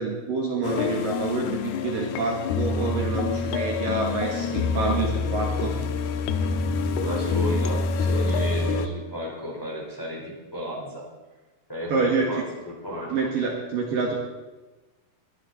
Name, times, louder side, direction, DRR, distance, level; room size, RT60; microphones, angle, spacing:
voice 1, 0.0-5.7 11.9-12.5 13.1-14.2, right 4 dB, 60° right, 0 dB, 3.0 m, -27 dB
sound 1, 0.6-8.9, left 4 dB, 80° left, 2.8 m, -26 dB
voice 2, 7.0-11.0 11.7-12.4 12.6-13.1, left 1 dB, 5° left, -3 dB, 3.6 m, -33 dB
21.5 x 11.5 x 4.2 m, 1.2 s
omnidirectional pair, 4.9 m